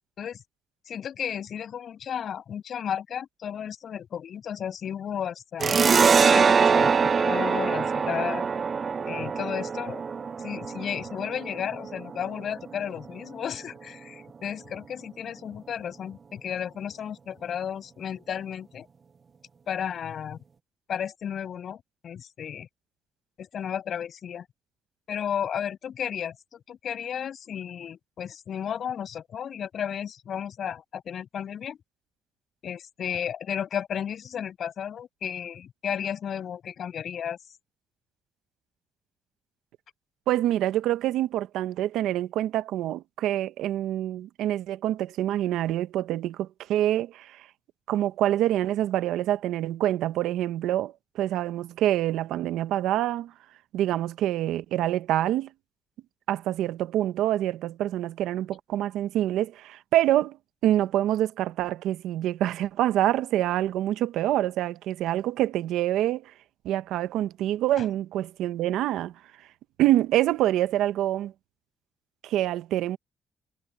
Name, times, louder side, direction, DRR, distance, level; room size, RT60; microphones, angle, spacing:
voice 1, 0.9-5.8 6.2-8.4 9.1-10.0 10.4-18.9 19.7-20.4 20.9-22.7 23.4-24.5 25.1-31.8 32.6-37.4 67.8-67.9, left 8 dB, 60° left, 7.5 m, -33 dB
sound 1, 5.6-12.8, right 5 dB, 40° right, 0.4 m, -23 dB
voice 2, 40.3-47.5 47.9-53.3 53.7-55.5 56.3-60.4 60.6-66.3 66.6-69.1 69.8-71.3 72.2-73.0, right 13 dB, 85° right, 0.9 m, -26 dB
cardioid pair, 90°, 0 cm